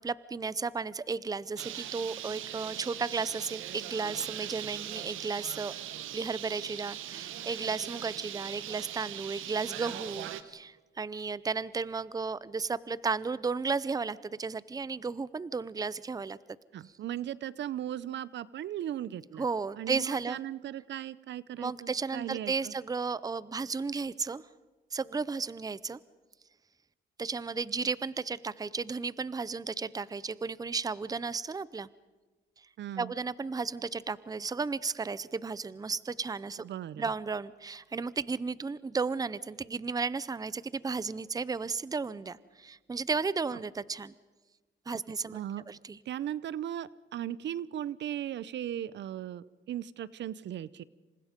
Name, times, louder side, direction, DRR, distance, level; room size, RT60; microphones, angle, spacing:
voice 1, 0.0-5.7 6.1-16.4 19.4-20.4 21.6-24.4 24.9-26.0 27.2-31.9 33.0-36.6 37.0-44.1 44.9-45.4 45.7-46.0, right 4 dB, 20° right, 19 dB, 0.6 m, -34 dB
Bird, 1.6-10.4, right 11 dB, 85° right, 1.3 m, -40 dB
voice 2, 16.7-19.5 19.8-22.7 32.8-33.1 36.6-37.1 44.9-45.0 45.3-45.6 46.1-50.8, right 11 dB, 65° right, 19 dB, 0.7 m, -37 dB
27.5 x 25.5 x 5.2 m, 1.3 s
cardioid pair, 90°, 20 cm